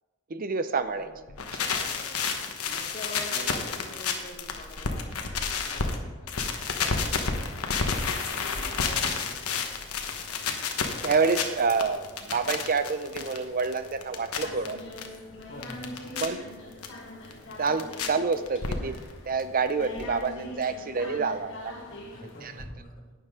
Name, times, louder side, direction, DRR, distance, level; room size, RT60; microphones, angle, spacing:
voice 1, 0.3-1.1 3.4-3.5 11.0-14.8 16.2-16.4 17.6-19.0 19.3-21.7 22.2-22.5, right 4 dB, 40° right, 11 dB, 0.6 m, -28 dB
sound 1, 1.3-6.0 6.3-15.1 15.4-16.3 16.8-16.9 17.3-18.1 18.3-19.1 19.4-19.5 19.7-19.8 20.0-20.1, left 5 dB, 90° left, 1.1 m, -30 dB
voice 2, 1.8-8.0 8.8-9.7 15.5-16.0 22.1-23.1, left 1 dB, 40° left, -1 dB, 1.9 m, -46 dB
sound 2, 8.4-22.6, left 1 dB, 60° left, 1.8 m, -44 dB
11.5 x 9.3 x 3.7 m, 1.3 s
head